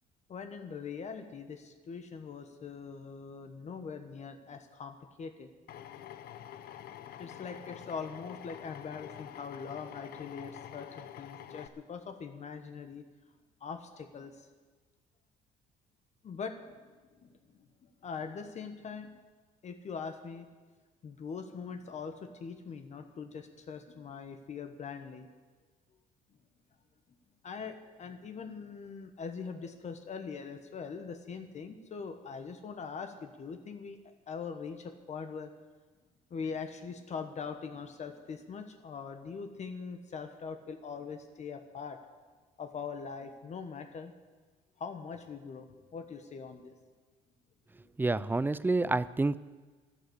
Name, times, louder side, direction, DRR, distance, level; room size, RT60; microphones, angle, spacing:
voice 1, 0.3-5.5 7.2-13.0 13.6-14.5 16.2-19.1 19.6-20.5 21.0-25.3 27.4-35.5 36.3-42.0 42.6-44.1 44.8-46.8, left 5 dB, 40° left, 7 dB, 1.2 m, -42 dB
Drill, 5.7-11.7, left 10 dB, 65° left, 0.9 m, -47 dB
voice 2, 48.0-49.4, right 3 dB, 10° right, 18 dB, 0.4 m, -28 dB
11.5 x 11.5 x 8.1 m, 1.4 s
cardioid pair, 110°, 17 cm